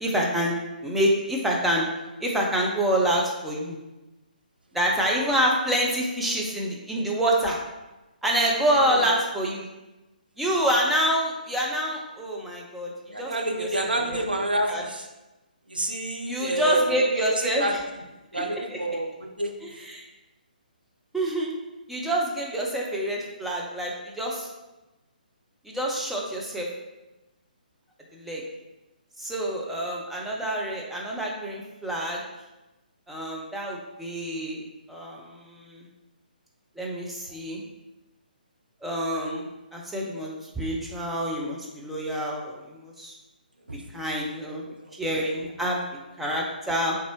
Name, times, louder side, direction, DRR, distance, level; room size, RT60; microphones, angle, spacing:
voice 1, 0.0-1.9 2.2-3.8 4.7-7.6 8.2-9.6 10.4-12.9 13.2-13.7 14.1-14.2 14.7-14.8 16.3-17.8 18.3-18.4 18.7-18.8 19.6-20.0 21.1-21.5 21.9-24.5 25.6-26.7 28.1-28.4 29.2-32.2 33.1-35.8 36.8-37.6 38.8-43.1 43.9-44.6 45.0-45.8 46.2-47.0, right 1 dB, ahead, -3 dB, 0.4 m, -27 dB
voice 2, 8.7-9.1 13.1-15.1 15.7-16.9 17.4-17.7 18.3-19.5 43.7-44.0 44.5-44.6 45.1-45.2, right 1 dB, 80° right, 2 dB, 0.6 m, -28 dB
4.0 x 3.5 x 3.0 m, 1.0 s
figure-of-eight pair, 135°, 5 cm